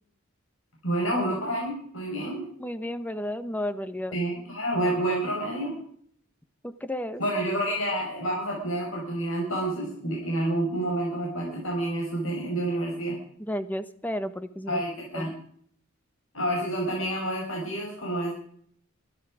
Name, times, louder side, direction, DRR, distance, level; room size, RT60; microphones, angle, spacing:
voice 1, 0.8-2.4 4.1-5.7 7.2-13.2 14.7-15.3 16.3-18.4, right 1 dB, 85° left, -2 dB, 5.4 m, -29 dB
voice 2, 2.6-4.1 6.6-7.2 13.4-14.8 15.1-15.3, left 1 dB, 10° left, 11 dB, 1.1 m, -32 dB
24.5 x 11.5 x 5.0 m, 0.63 s
head